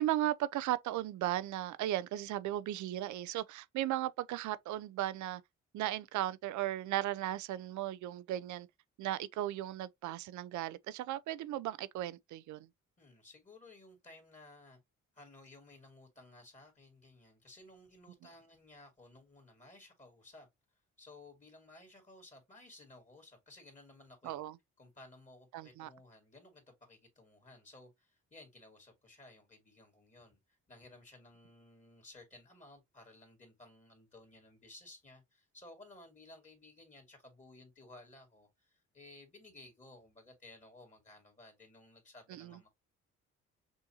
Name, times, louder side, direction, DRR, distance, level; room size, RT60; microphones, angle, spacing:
voice 1, 0.0-5.4 5.7-8.7 9.0-12.7 24.2-24.6 25.5-25.9 42.3-42.6, right 13 dB, 75° right, 0.5 m, -36 dB
voice 2, 13.0-14.8 15.1-20.5 21.0-24.4 24.8-30.4 30.7-42.7, left 2 dB, 25° left, 2.0 m, -57 dB
6.2 x 2.6 x 2.8 m
cardioid pair, 90°, 30 cm